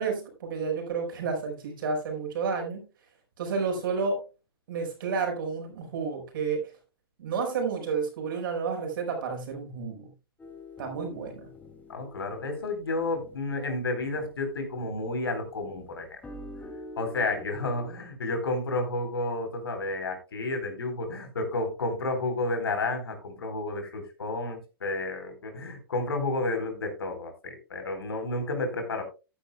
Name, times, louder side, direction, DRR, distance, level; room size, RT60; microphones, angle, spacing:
voice 1, 0.0-2.8 3.4-4.2 4.7-6.7 7.2-10.1 10.8-11.5, right 5 dB, 60° right, 3 dB, 4.9 m, -31 dB
sound 1, 10.4-15.2 15.6-17.9, left 1 dB, 10° left, 2.5 m, -47 dB
voice 2, 11.9-16.2 17.0-29.0, left 2 dB, 75° left, 5 dB, 4.1 m, -31 dB
14.5 x 10.0 x 2.3 m, 0.30 s
figure-of-eight pair, 110°, 13 cm